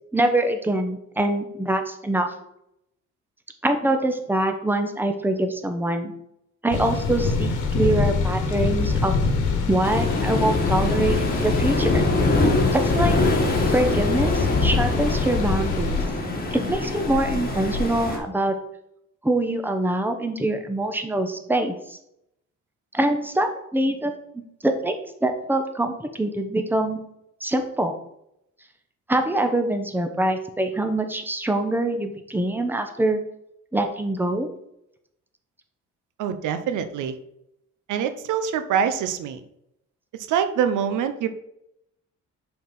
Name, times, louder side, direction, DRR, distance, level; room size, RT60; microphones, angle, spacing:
voice 1, 0.1-2.3 3.6-6.1 6.6-9.1 9.7-12.0 12.7-13.2 13.7-16.0 16.5-18.6 19.2-22.0 22.9-24.1 24.6-24.9 25.2-27.0 27.4-27.9 29.1-33.2 33.7-34.5, right 1 dB, 5° right, 6 dB, 0.9 m, -24 dB
sound 1, 6.7-16.1, left 4 dB, 85° left, 1.2 m, -25 dB
Waves surf, 9.8-18.2, left 2 dB, 30° left, 1.9 m, -24 dB
voice 2, 36.2-37.2 37.9-39.4 40.3-41.3, right 8 dB, 85° right, 10 dB, 0.7 m, -24 dB
5.5 x 4.6 x 5.5 m, 0.80 s
cardioid pair, 90°, 30 cm